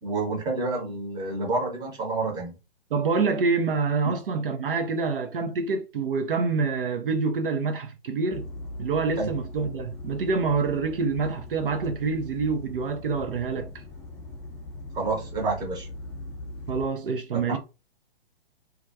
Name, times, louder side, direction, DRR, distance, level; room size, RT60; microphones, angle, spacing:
voice 1, 0.0-2.6 9.2-9.3 14.9-15.9 17.5-17.6, right 3 dB, 15° right, 0.8 m, -28 dB
voice 2, 2.9-8.5 8.8-13.8 16.7-17.6, right 4 dB, 60° right, 0.5 m, -26 dB
sound 1, 8.3-16.9, left 2 dB, 10° left, 0.4 m, -40 dB
2.3 x 2.2 x 2.6 m
figure-of-eight pair, 120°, 30 cm